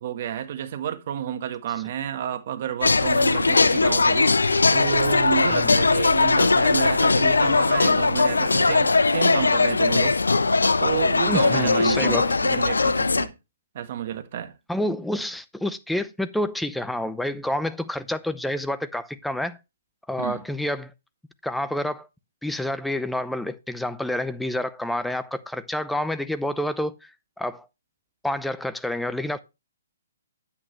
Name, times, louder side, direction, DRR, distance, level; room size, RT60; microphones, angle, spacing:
voice 1, 0.0-4.3 4.7-10.2 10.8-13.3 13.7-14.6 20.2-20.4, right 10 dB, 50° right, 1.5 m, -30 dB
sound 1, 2.8-13.3, left 3 dB, 90° left, 0.8 m, -20 dB
voice 2, 5.5-5.8 11.3-12.4 14.7-19.6 20.1-20.9 21.4-22.1 22.4-27.1 27.4-27.7 28.2-29.4, left 1 dB, ahead, 0.7 m, -28 dB
9.8 x 8.6 x 3.2 m
hypercardioid pair, 135°, 0 cm